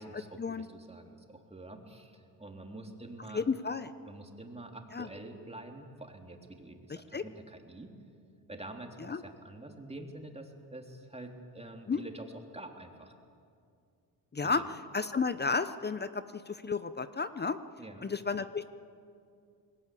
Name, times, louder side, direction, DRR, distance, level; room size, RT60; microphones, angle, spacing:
voice 1, 0.0-3.4 4.0-7.9 8.5-12.3 12.5-13.1 14.4-14.6 17.8-18.1, right 2 dB, 15° right, 3 dB, 3.3 m, -47 dB
voice 2, 3.3-3.9 4.9-5.1 7.1-7.2 9.0-9.2 11.9-12.0 14.3-14.6 14.9-17.6 18.0-18.6, left 4 dB, 25° left, 12 dB, 0.8 m, -32 dB
21.0 x 18.0 x 8.6 m, 2.4 s
supercardioid pair, 65°, 44 cm